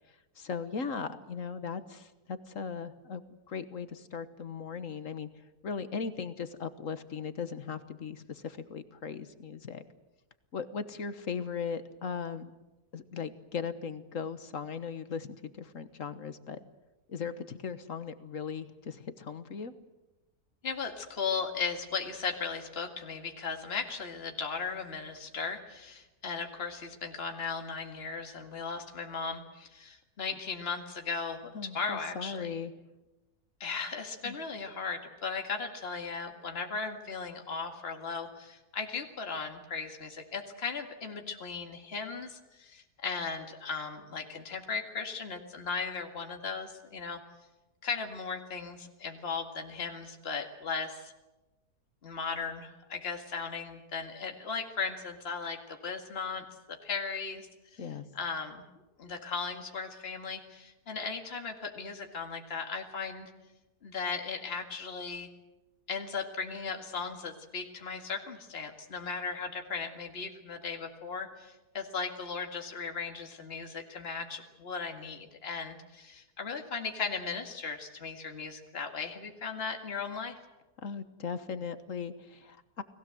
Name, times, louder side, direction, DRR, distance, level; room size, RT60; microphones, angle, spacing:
voice 1, 0.4-3.2 3.5-5.3 5.6-9.8 10.5-12.5 12.9-16.6 17.1-19.7 31.5-32.7 34.2-34.4 57.8-58.1 80.8-82.8, left 6 dB, 55° left, 11 dB, 1.6 m, -38 dB
voice 2, 20.6-32.6 33.6-47.2 47.8-51.1 52.0-57.9 58.1-58.6 59.0-63.3 63.8-65.3 65.9-80.3, left 5 dB, 40° left, 4 dB, 2.2 m, -37 dB
30.0 x 19.5 x 7.8 m, 1.1 s
omnidirectional pair, 1.7 m